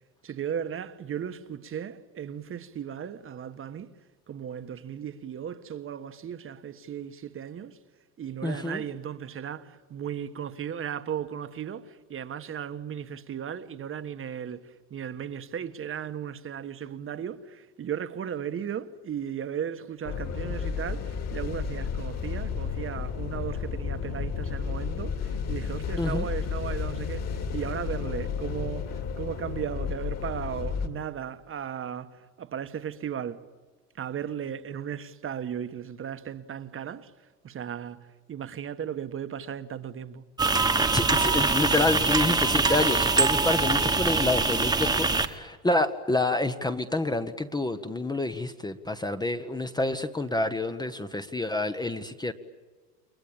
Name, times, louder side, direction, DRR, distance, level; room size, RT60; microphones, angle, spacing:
voice 1, 0.2-3.9 4.3-7.8 8.2-33.5 33.9-37.1 37.4-40.2, right 8 dB, 30° right, 1.4 m, -36 dB
voice 2, 8.4-8.8 26.0-26.3 40.9-52.3, left 2 dB, 10° left, 1.1 m, -28 dB
sound 1, 20.1-30.9, left 6 dB, 35° left, 2.7 m, -32 dB
sound 2, 40.4-45.3, right 3 dB, 10° right, 1.5 m, -23 dB
29.5 x 22.5 x 8.8 m
supercardioid pair, 120°, 45 cm